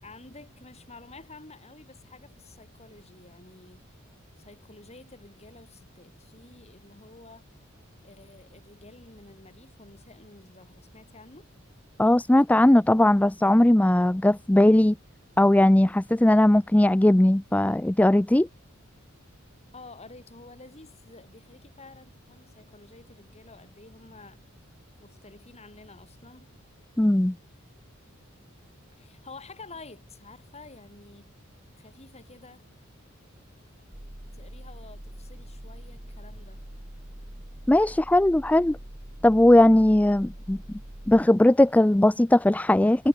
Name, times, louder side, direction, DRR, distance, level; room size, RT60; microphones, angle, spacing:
voice 1, 0.0-3.8 4.4-7.4 8.0-11.5 19.7-24.4 25.0-26.5 28.9-31.4 31.8-32.6 34.3-36.6, left 3 dB, 30° left, 6.7 m, -50 dB
voice 2, 12.0-15.0 15.4-18.5 27.0-27.4 37.7-38.8 39.2-40.6 41.1-43.1, left 1 dB, 5° left, 0.4 m, -19 dB
sound 1, 33.9-41.2, right 1 dB, 45° right, 3.0 m, -43 dB
head